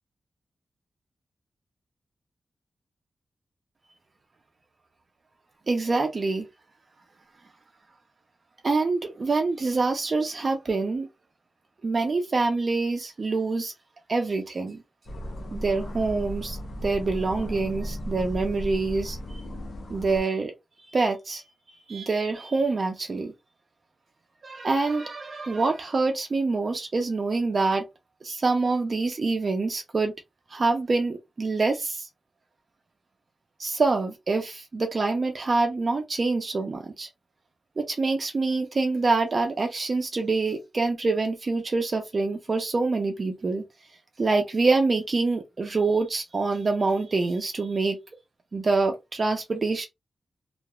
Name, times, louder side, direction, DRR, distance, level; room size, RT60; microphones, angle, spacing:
voice 1, 5.7-6.5 8.6-11.1 11.8-13.7 14.1-14.8 15.5-19.2 19.9-20.5 20.9-21.4 21.9-23.3 24.4-27.8 28.2-30.1 30.5-32.1 33.6-37.1 37.8-43.6 44.2-48.0 48.5-49.9, right 3 dB, 40° right, 0.5 m, -26 dB
sound 1, 15.1-20.2, equal, 70° left, 0.9 m, -36 dB
3.0 x 2.4 x 2.3 m
wide cardioid pair, 155°, 0 cm